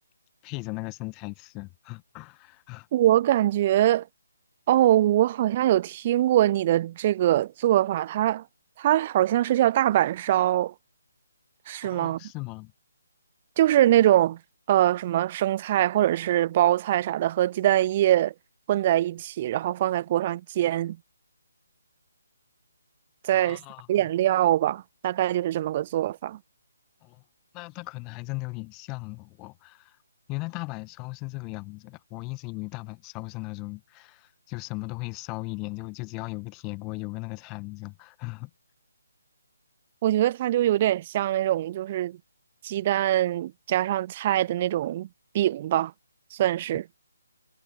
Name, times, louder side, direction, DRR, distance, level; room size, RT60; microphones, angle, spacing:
voice 1, 0.4-2.9 11.9-12.7 23.3-23.9 27.0-27.2 27.5-30.0 30.3-38.5, left 27 dB, 20° left, 1.6 m, -37 dB
voice 2, 2.9-4.1 4.7-8.4 8.8-10.7 11.7-12.2 13.6-14.4 14.7-18.3 18.7-21.0 23.2-23.6 23.9-26.4 40.0-42.2 42.6-45.1 45.3-45.9 46.3-46.9, right 13 dB, 30° right, 0.3 m, -23 dB
figure-of-eight pair, 145°, 0 cm